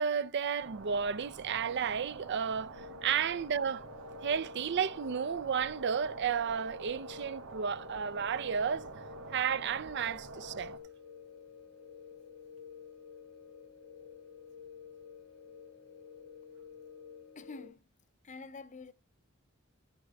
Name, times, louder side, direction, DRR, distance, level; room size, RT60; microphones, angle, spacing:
voice 1, 0.0-2.8 3.0-3.8 4.2-8.9 9.3-10.7, right 7 dB, 55° right, 0.5 m, -32 dB
sound 1, 0.6-10.8, right 4 dB, 90° right, 2.3 m, -48 dB
sound 2, 2.7-17.7, left 7 dB, 90° left, 1.6 m, -51 dB
voice 2, 17.4-17.9 18.2-18.9, left 4 dB, 35° left, 0.6 m, -47 dB
14.0 x 7.6 x 3.4 m
head